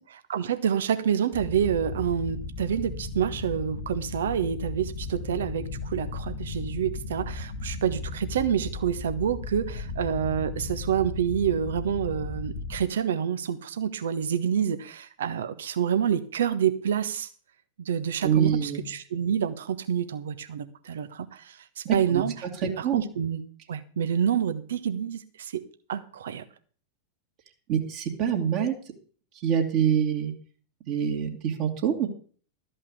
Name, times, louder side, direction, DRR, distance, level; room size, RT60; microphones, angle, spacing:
voice 1, 0.1-17.3 17.8-23.4 23.7-25.6 25.9-26.4, right 8 dB, 60° right, 10 dB, 1.2 m, -28 dB
sound 1, 1.3-12.9, left 3 dB, 40° left, 1.7 m, -36 dB
voice 2, 18.2-18.9 21.8-22.2 22.8-23.0 27.7-28.7 29.4-30.3 30.9-32.1, right 8 dB, 40° right, 1 dB, 2.3 m, -25 dB
13.5 x 5.5 x 8.4 m, 0.43 s
figure-of-eight pair, 90°, 0 cm